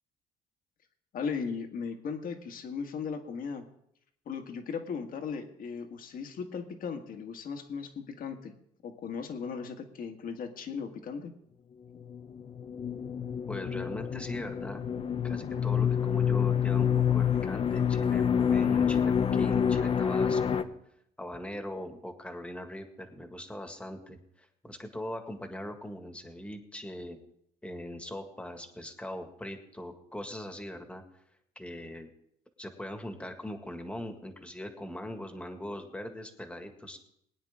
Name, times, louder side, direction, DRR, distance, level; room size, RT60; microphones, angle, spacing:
voice 1, 1.1-3.7 4.3-8.5 8.8-11.3, left 6 dB, 55° left, 5 dB, 1.7 m, -37 dB
sound 1, 12.1-20.6, left 8 dB, 35° left, 0.8 m, -27 dB
voice 2, 13.5-14.8 15.2-20.7 21.2-27.2 27.6-31.0 31.6-32.1 32.6-37.0, left 1 dB, 5° left, 5 dB, 1.9 m, -41 dB
21.5 x 9.5 x 3.7 m, 0.73 s
cardioid pair, 110°, 17 cm